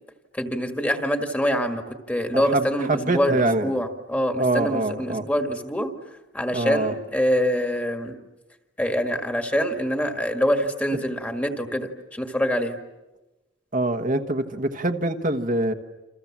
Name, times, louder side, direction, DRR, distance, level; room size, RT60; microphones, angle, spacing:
voice 1, 0.4-1.8 2.1-5.9 6.3-8.2 8.8-12.8, equal, 10° left, 5 dB, 1.8 m, -25 dB
voice 2, 2.3-3.7 4.4-5.2 6.5-6.9 13.7-15.7, right 2 dB, 45° right, 6 dB, 1.3 m, -24 dB
29.0 x 27.5 x 7.4 m, 1.1 s
head